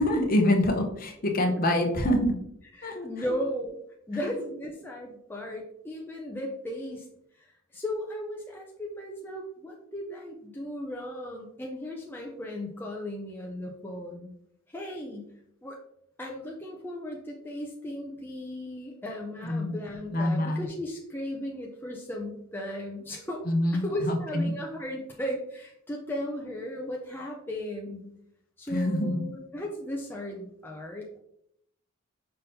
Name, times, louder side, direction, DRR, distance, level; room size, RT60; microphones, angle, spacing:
voice 1, 0.0-2.4 2.8-3.1 19.4-19.8 20.1-20.6 23.5-24.5 28.7-29.2, left 1 dB, 40° left, 3 dB, 0.8 m, -25 dB
voice 2, 2.7-3.8 4.1-7.1 7.4-14.3 14.7-15.3 15.6-15.8 16.2-23.4 23.7-28.1 28.6-31.2, equal, 10° left, -1 dB, 0.5 m, -36 dB
5.5 x 3.6 x 2.7 m, 0.74 s
head